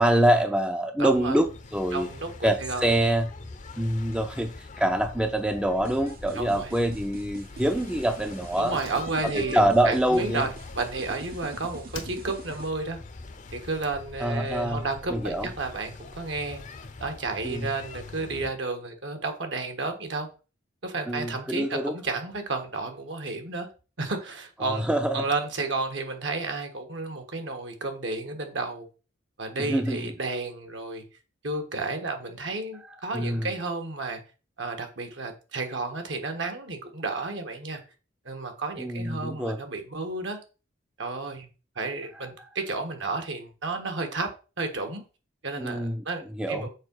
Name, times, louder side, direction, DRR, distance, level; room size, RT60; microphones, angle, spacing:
voice 1, 0.0-2.1 2.4-3.3 3.8-8.8 9.3-10.5 14.2-14.8 15.1-15.5 17.4-17.7 21.1-21.9 24.6-25.3 29.7-30.0 33.1-33.5 38.8-39.6 42.2-42.5 45.6-46.0 46.4-46.7, right 1 dB, 5° right, 0.4 m, -25 dB
voice 2, 1.0-1.4 1.9-2.9 6.3-6.7 8.6-13.0 13.5-16.6 17.0-20.3 20.8-23.7 24.0-24.8 25.1-28.9 29.4-31.0 31.4-34.2 34.6-37.8 38.2-40.4 41.0-41.5 41.7-44.3 44.6-45.0 45.4-46.7, right 3 dB, 65° right, 1.4 m, -32 dB
sound 1, 1.1-18.5, left 3 dB, 40° left, 0.6 m, -43 dB
sound 2, 5.8-12.7, right 4 dB, 50° right, 0.8 m, -46 dB
Slam, 8.7-11.4 11.9-12.7 12.9-13.0, left 4 dB, 80° left, 1.1 m, -46 dB
6.5 x 4.7 x 4.6 m
head